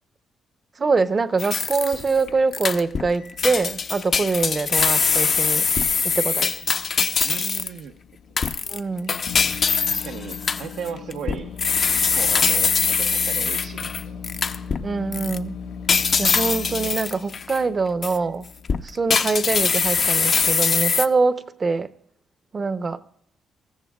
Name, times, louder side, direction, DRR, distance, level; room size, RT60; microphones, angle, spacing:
voice 1, 0.8-5.7 6.0-6.5 8.7-9.2 14.8-15.6 16.2-18.4 18.7-21.9 22.5-23.0, right 4 dB, 35° right, 0.7 m, -24 dB
Microwave oven, 1.1-20.4, left 6 dB, 80° left, 6.2 m, -40 dB
sound 1, 1.4-2.2 2.5-3.1 3.4-7.8 8.4-14.8 15.1-15.4 15.9-17.6 18.0-18.2 18.7-21.1, left 5 dB, 45° left, 0.7 m, -22 dB
voice 2, 7.2-7.9 8.3-8.5 9.1-9.3 9.9-11.5 11.8-14.2, right 7 dB, 80° right, 0.8 m, -36 dB
24.0 x 14.5 x 2.4 m
cardioid pair, 90°, 0 cm